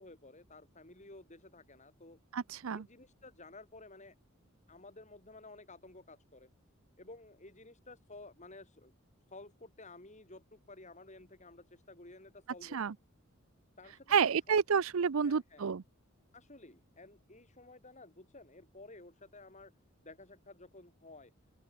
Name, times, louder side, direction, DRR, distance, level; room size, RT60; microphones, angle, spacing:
voice 1, 0.0-2.2 2.7-4.1 4.7-6.5 7.0-8.9 9.3-12.9 13.8-14.3 15.2-15.7 16.3-19.7 20.0-21.3, left 2 dB, 35° left, 5.9 m, -53 dB
voice 2, 2.3-2.8 12.7-12.9 14.1-15.8, right 6 dB, 75° right, 0.6 m, -29 dB
open air
head